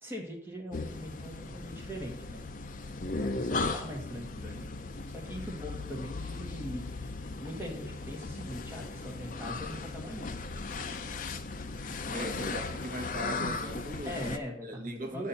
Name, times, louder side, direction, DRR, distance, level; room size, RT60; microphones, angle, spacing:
voice 1, 0.0-2.4 3.2-4.7 5.0-6.9 7.4-10.3 12.1-12.4 14.0-15.3, equal, 10° right, 1.5 m, -41 dB
sound 1, 0.7-14.4, left 3 dB, 45° left, 0.5 m, -37 dB
voice 2, 12.1-14.2 14.6-15.3, right 1 dB, 45° right, 1.0 m, -39 dB
8.7 x 4.3 x 6.8 m
head